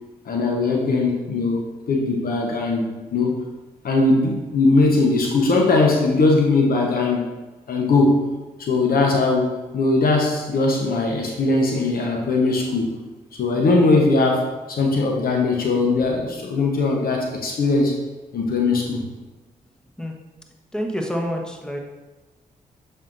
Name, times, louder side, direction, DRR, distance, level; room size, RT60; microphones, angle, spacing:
voice 1, 0.3-3.3 3.8-7.3 7.7-8.3 8.6-12.9 13.4-17.9 18.3-19.1, left 3 dB, 65° left, 1 dB, 1.0 m, -20 dB
voice 2, 20.7-21.8, equal, 5° left, 1 dB, 1.2 m, -27 dB
7.2 x 5.6 x 2.6 m, 1.2 s
supercardioid pair, 50°, 16 cm